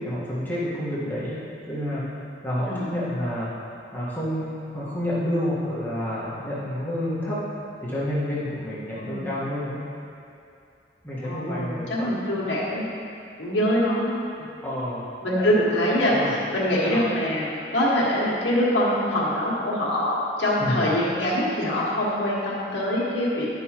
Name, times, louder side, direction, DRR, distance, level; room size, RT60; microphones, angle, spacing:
voice 1, 0.0-1.4 1.7-2.1 2.4-3.5 3.9-7.4 7.8-9.8 11.0-12.1 14.6-15.1 15.4-15.5 16.0-16.3 16.8-17.0 20.6-20.8, equal, 10° left, -9 dB, 1.4 m, -29 dB
voice 2, 9.0-9.3 11.2-12.9 13.4-14.5 15.2-16.1 16.5-23.5, left 1 dB, 80° left, -8 dB, 1.6 m, -24 dB
10.5 x 5.4 x 3.0 m, 2.5 s
head